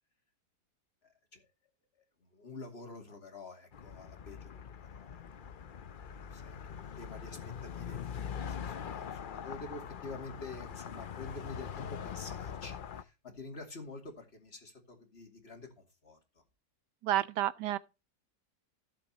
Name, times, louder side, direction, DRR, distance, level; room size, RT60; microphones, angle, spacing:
voice 1, 1.0-1.5 2.0-5.5 5.9-16.4, left 3 dB, 40° left, 2.6 m, -48 dB
sound 1, 3.7-13.0, left 8 dB, 60° left, 0.5 m, -43 dB
voice 2, 17.0-17.8, right 13 dB, 90° right, 1.4 m, -30 dB
16.0 x 7.5 x 2.8 m
omnidirectional pair, 1.8 m